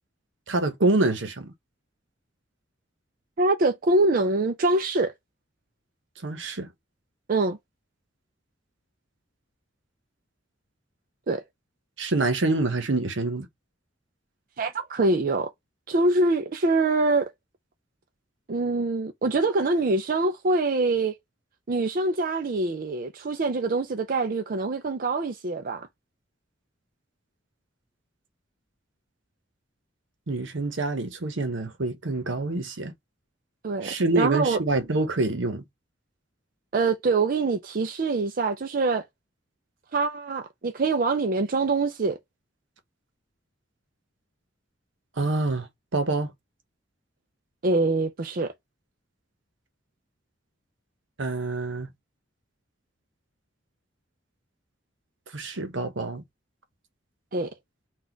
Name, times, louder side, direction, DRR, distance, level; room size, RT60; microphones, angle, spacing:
voice 1, 0.5-1.5 6.2-6.7 12.0-13.5 30.3-32.9 33.8-35.6 45.2-46.3 51.2-51.9 55.3-56.2, right 2 dB, 75° right, 1.0 m, -26 dB
voice 2, 3.4-5.1 7.3-7.6 11.3-11.4 14.6-15.5 15.9-17.3 18.5-21.2 21.7-25.9 33.6-34.6 36.7-39.0 39.9-42.2 47.6-48.5 57.3-57.5, right 3 dB, 50° right, 0.5 m, -24 dB
4.0 x 2.4 x 4.4 m
head